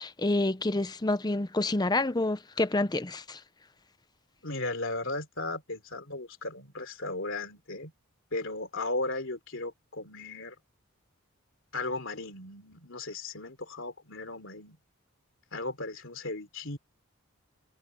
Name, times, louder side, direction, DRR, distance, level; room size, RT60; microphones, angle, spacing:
voice 1, 0.0-3.4, left 2 dB, 20° left, 0.6 m, -28 dB
voice 2, 4.4-7.9 8.3-10.6 11.7-14.8 15.5-16.8, left 2 dB, 60° left, 3.4 m, -36 dB
head